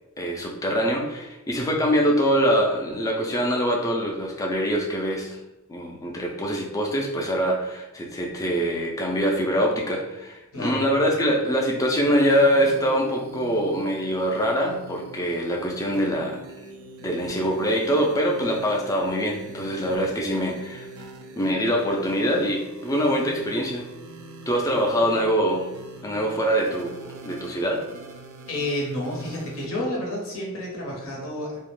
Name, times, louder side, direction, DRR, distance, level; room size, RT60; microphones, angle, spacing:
voice 1, 0.2-5.4 5.7-16.4 17.0-21.1 21.4-23.9 24.5-25.7 26.0-27.8, equal, 15° left, 0 dB, 0.3 m, -24 dB
sound 1, 12.0-29.7, right 2 dB, 75° right, 0.3 m, -43 dB
voice 2, 28.5-31.6, left 1 dB, 75° left, -2 dB, 0.8 m, -30 dB
2.3 x 2.0 x 3.1 m, 1.0 s
head